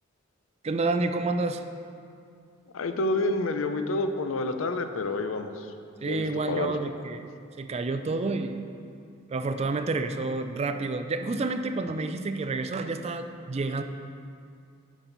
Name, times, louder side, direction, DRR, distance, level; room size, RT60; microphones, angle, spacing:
voice 1, 0.6-1.6 6.0-7.3 7.6-8.6 9.3-13.8, right 3 dB, 30° right, 8 dB, 0.4 m, -29 dB
voice 2, 2.7-5.7 6.0-6.8, left 2 dB, 70° left, 8 dB, 0.5 m, -29 dB
9.9 x 5.9 x 4.0 m, 2.4 s
head